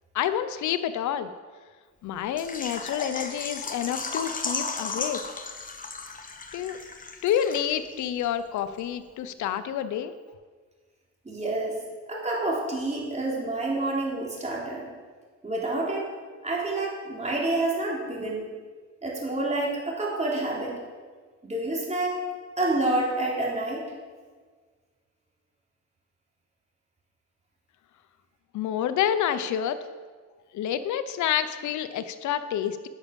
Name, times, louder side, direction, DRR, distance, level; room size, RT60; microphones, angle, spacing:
voice 1, 0.1-1.3 2.0-5.2 6.5-6.8 7.2-10.1 28.5-29.8 30.5-32.9, left 10 dB, 70° left, 11 dB, 0.7 m, -28 dB
Water / Liquid, 2.4-8.0 8.2-8.3 8.8-8.9, left 4 dB, 25° left, 1.1 m, -35 dB
voice 2, 11.2-11.8 12.1-14.9 15.4-16.1 16.4-18.5 19.0-20.7 21.4-22.2 22.6-23.8, right 2 dB, 20° right, -3 dB, 3.4 m, -28 dB
10.5 x 6.4 x 7.0 m, 1.5 s
cardioid pair, 90°, 30 cm